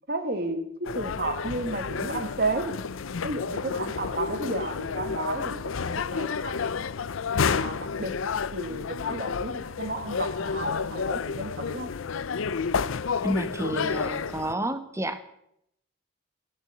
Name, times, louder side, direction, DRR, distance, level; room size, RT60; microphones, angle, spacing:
voice 1, 0.1-2.7 3.2-6.8 7.4-8.1 8.5-11.9, right 2 dB, 50° right, 8 dB, 1.7 m, -33 dB
sound 1, 0.8-14.5, left 5 dB, 80° left, 0.6 m, -30 dB
voice 2, 13.2-15.2, right 1 dB, 15° right, 11 dB, 1.0 m, -30 dB
14.0 x 10.5 x 7.8 m, 0.76 s
head